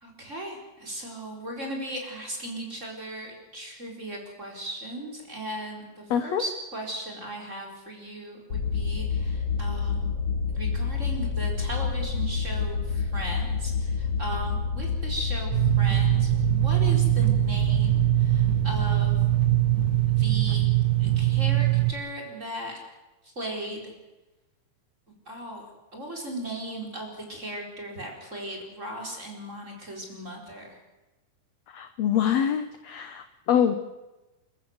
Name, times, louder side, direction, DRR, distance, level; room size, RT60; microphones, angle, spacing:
voice 1, 0.0-10.1 10.5-19.1 20.1-20.7 21.0-22.7 23.4-23.9 25.3-25.6 25.9-30.7, right 1 dB, 20° right, 0 dB, 4.5 m, -37 dB
voice 2, 6.1-6.4 31.7-33.8, left 9 dB, 75° left, 9 dB, 1.6 m, -25 dB
sound 1, 8.5-21.7, left 5 dB, 45° left, 2.9 m, -30 dB
sound 2, 15.5-21.9, right 19 dB, 65° right, 2.3 m, -22 dB
28.5 x 14.0 x 8.0 m, 1.1 s
omnidirectional pair, 4.3 m